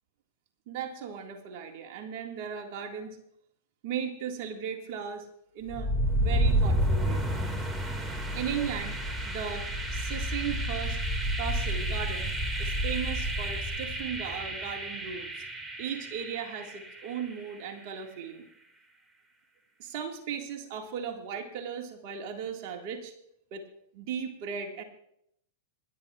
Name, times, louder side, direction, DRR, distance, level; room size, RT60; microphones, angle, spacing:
voice 1, 0.7-3.2 3.8-5.3 5.5-5.9 6.2-7.3 8.3-9.0 9.3-9.7 9.9-11.0 11.4-12.3 12.6-15.3 15.8-18.5 19.8-23.1 23.5-23.6 23.9-24.8, right 7 dB, 50° right, 3 dB, 1.9 m, -36 dB
sound 1, 5.7-17.5, right 1 dB, 15° right, 2.0 m, -30 dB
26.5 x 11.5 x 2.4 m, 0.74 s
hypercardioid pair, 105°, 0 cm